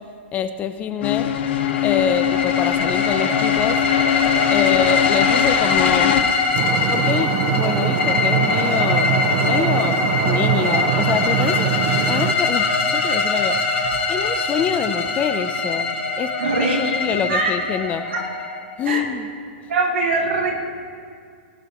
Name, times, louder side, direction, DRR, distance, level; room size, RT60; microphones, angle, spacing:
voice 1, 0.3-1.3 1.8-3.8 4.5-6.2 6.8-11.7 12.1-13.6 14.1-16.3 16.8-18.0 18.8-19.3, left 8 dB, 20° left, 10 dB, 0.5 m, -25 dB
sound 1, 1.0-6.2, left 11 dB, 60° left, 1.1 m, -22 dB
sound 2, 1.1-18.9, left 4 dB, 85° left, 2.2 m, -23 dB
sound 3, 6.5-12.3, right 12 dB, 40° right, 0.6 m, -22 dB
voice 2, 16.4-17.5 18.1-18.2 18.8-19.1 19.7-20.5, right 3 dB, 80° right, -2 dB, 3.1 m, -22 dB
19.5 x 12.0 x 3.0 m, 2.2 s
hypercardioid pair, 140°, 6 cm